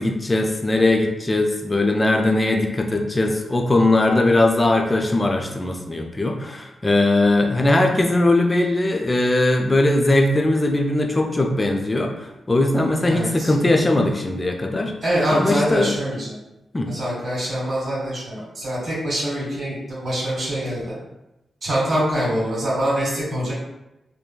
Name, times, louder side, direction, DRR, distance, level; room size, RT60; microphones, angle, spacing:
voice 1, 0.0-14.9 15.3-16.0 16.7-16.9, left 2 dB, 30° left, 2 dB, 0.5 m, -20 dB
voice 2, 13.0-13.5 15.0-16.4 16.9-20.9 21.6-23.5, equal, 50° right, -7 dB, 1.3 m, -24 dB
2.9 x 2.2 x 2.2 m, 0.93 s
supercardioid pair, 45°, 0 cm